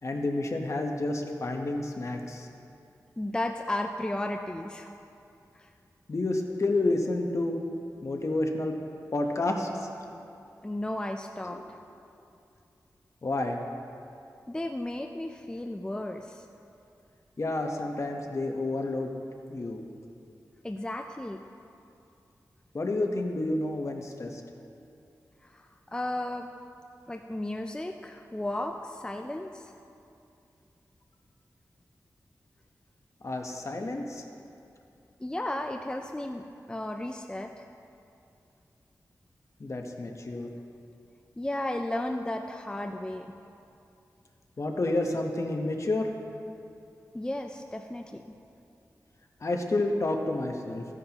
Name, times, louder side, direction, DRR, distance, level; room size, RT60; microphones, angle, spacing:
voice 1, 0.0-2.5 6.1-7.6 8.0-8.8 9.1-9.9 11.4-11.6 13.2-13.6 17.4-19.1 19.5-19.8 22.7-24.4 33.2-34.2 39.6-40.5 44.6-46.1 49.4-50.8, left 2 dB, 50° left, 2 dB, 1.0 m, -30 dB
voice 2, 3.2-4.9 5.6-5.7 10.6-11.8 14.5-16.4 20.6-21.4 25.4-26.5 27.1-29.8 35.2-37.7 41.4-43.3 47.1-48.2, left 1 dB, 15° left, 4 dB, 0.4 m, -34 dB
15.0 x 9.9 x 2.9 m, 2.6 s
wide cardioid pair, 80°, 7 cm